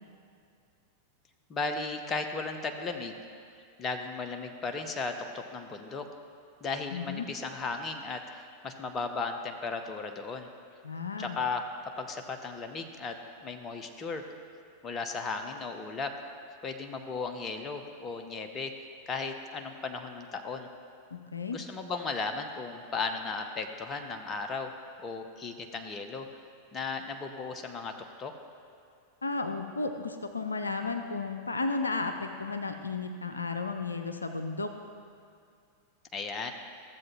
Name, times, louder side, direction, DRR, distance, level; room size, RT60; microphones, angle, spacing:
voice 1, 1.5-3.2 3.8-6.1 6.6-10.5 11.2-14.3 14.8-16.1 16.6-20.7 21.5-24.7 25.0-26.3 26.7-28.3 36.1-36.5, left 4 dB, 25° left, 5 dB, 0.7 m, -36 dB
voice 2, 6.9-7.3 10.8-11.4 21.1-21.6 29.2-34.7, left 3 dB, 80° left, 6 dB, 0.5 m, -33 dB
14.5 x 7.5 x 3.0 m, 2.3 s
figure-of-eight pair, 90°, 0 cm